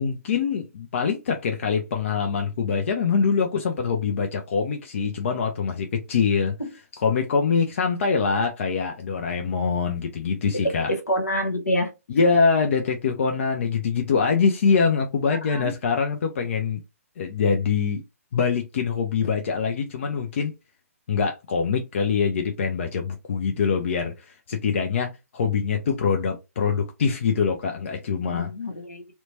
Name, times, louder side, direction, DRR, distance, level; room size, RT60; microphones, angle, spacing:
voice 1, 0.0-6.5 7.0-10.9 12.1-16.8 17.2-18.0 18.3-20.5 21.1-28.5, left 5 dB, 50° left, 0.5 m, -24 dB
voice 2, 10.5-11.9 15.5-15.7 28.3-29.1, equal, 80° left, 1.1 m, -27 dB
2.9 x 2.2 x 2.7 m
figure-of-eight pair, 135°, 8 cm